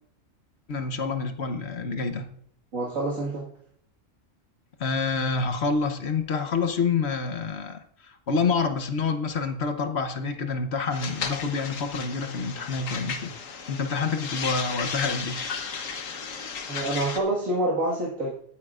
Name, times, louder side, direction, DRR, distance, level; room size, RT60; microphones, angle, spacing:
voice 1, 0.7-2.3 4.8-15.4, left 4 dB, 55° left, 7 dB, 1.2 m, -28 dB
voice 2, 2.7-3.5 16.7-18.3, right 1 dB, 90° right, -5 dB, 2.2 m, -27 dB
sound 1, 10.9-17.2, left 6 dB, 80° left, 1.4 m, -34 dB
21.0 x 9.1 x 2.4 m, 0.66 s
omnidirectional pair, 1.4 m